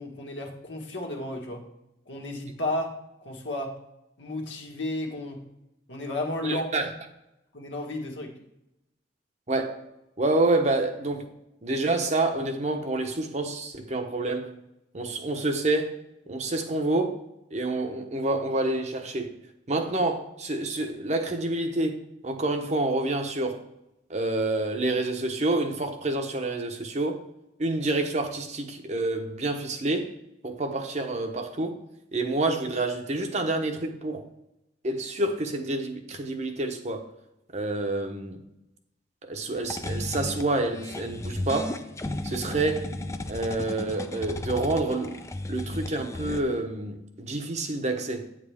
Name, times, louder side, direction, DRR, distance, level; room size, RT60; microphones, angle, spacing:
voice 1, 0.0-1.6 2.1-3.8 4.2-5.4 5.9-6.9 7.5-8.4, left 1 dB, 90° left, 1.6 m, -33 dB
voice 2, 6.4-6.9 9.5-9.8 10.2-11.3 11.6-14.5 14.9-16.0 16.3-17.2 17.5-19.3 19.7-23.6 24.1-27.2 27.6-30.1 30.4-31.8 32.1-34.3 34.8-37.1 37.5-38.4 39.3-41.8 42.2-42.9 43.3-45.2 45.5-48.3, right 2 dB, 40° right, 0.9 m, -28 dB
sound 1, 39.5-46.4, left 1 dB, 15° left, 0.4 m, -34 dB
9.1 x 7.5 x 3.5 m
head